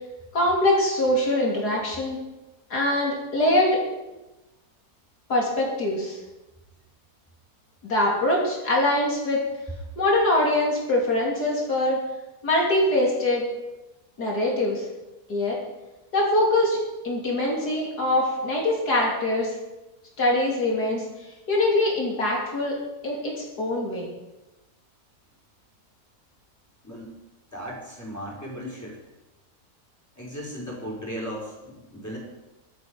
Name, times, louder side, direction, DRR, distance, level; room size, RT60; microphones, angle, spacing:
voice 1, 0.3-2.2 2.7-3.8 5.3-6.2 7.8-9.4 10.0-12.0 12.4-13.4 14.2-14.9 15.3-15.6 16.1-16.8 17.0-19.6 20.2-21.0 21.5-22.8 23.0-24.1, left 1 dB, 80° left, -2 dB, 3.6 m, -23 dB
voice 2, 27.5-29.0 30.2-32.2, equal, 10° left, -3 dB, 5.1 m, -36 dB
23.0 x 8.6 x 5.3 m, 1.0 s
omnidirectional pair, 1.7 m